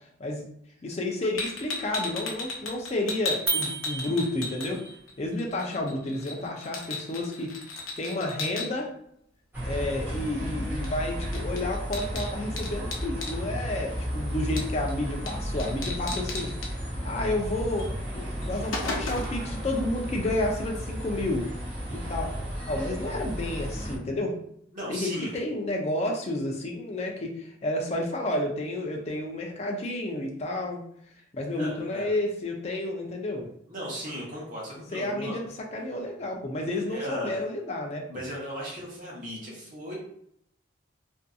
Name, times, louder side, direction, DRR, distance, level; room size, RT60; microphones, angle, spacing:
voice 1, 0.8-4.8 5.2-7.5 8.0-8.9 9.6-16.5 17.0-21.5 21.9-22.3 22.7-24.4 24.9-30.8 31.3-33.5 34.9-35.4 35.7-38.0, left 1 dB, 30° left, 1 dB, 0.4 m, -31 dB
sound 1, 1.4-5.1 5.4-8.7 10.8-11.0 11.2-13.4 14.6-14.9 15.3-15.4 15.6-16.7 17.8-17.9 18.3-19.4, left 3 dB, 80° left, 0.6 m, -35 dB
sound 2, 3.5-5.0, right 4 dB, 70° right, 1.0 m, -32 dB
sound 3, 9.5-24.0, equal, 10° right, 0.8 m, -33 dB
voice 2, 24.7-25.3 31.6-32.1 33.7-35.4 36.3-37.4 38.1-39.9, equal, 40° right, -5 dB, 0.9 m, -37 dB
2.6 x 2.5 x 2.3 m, 0.71 s
head